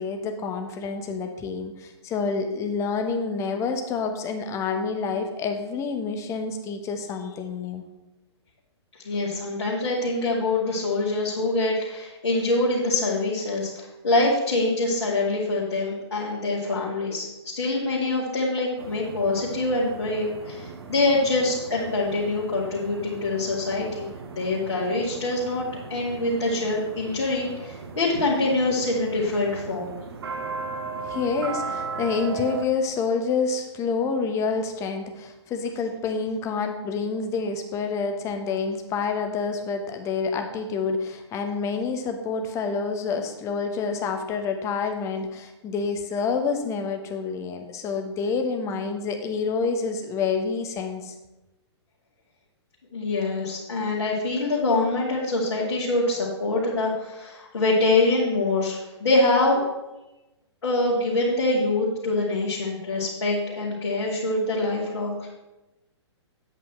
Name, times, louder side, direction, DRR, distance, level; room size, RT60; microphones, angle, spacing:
voice 1, 0.0-7.8 31.0-51.1, left 5 dB, 20° left, 5 dB, 1.1 m, -28 dB
voice 2, 9.0-13.7 14.0-30.0 52.9-59.6 60.6-65.3, left 2 dB, 60° left, -6 dB, 2.2 m, -25 dB
sound 1, 18.8-32.6, right 4 dB, 60° right, 1.0 m, -37 dB
9.1 x 8.3 x 4.4 m, 1.0 s
figure-of-eight pair, 115°, 15 cm